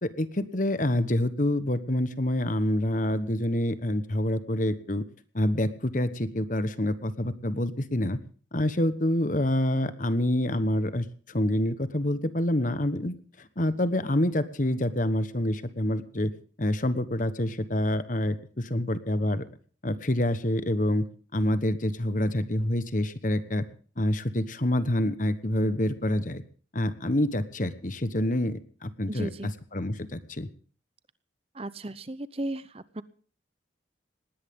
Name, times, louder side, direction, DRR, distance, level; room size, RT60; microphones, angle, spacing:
voice 1, 0.0-5.0 5.3-8.2 8.5-16.3 16.6-19.4 19.8-21.0 21.3-23.6 24.0-26.4 26.7-30.5, left 1 dB, 45° left, 13 dB, 1.2 m, -27 dB
voice 2, 29.1-29.5 31.5-33.0, right 1 dB, 30° right, 16 dB, 0.8 m, -35 dB
19.5 x 17.0 x 3.7 m, 0.42 s
head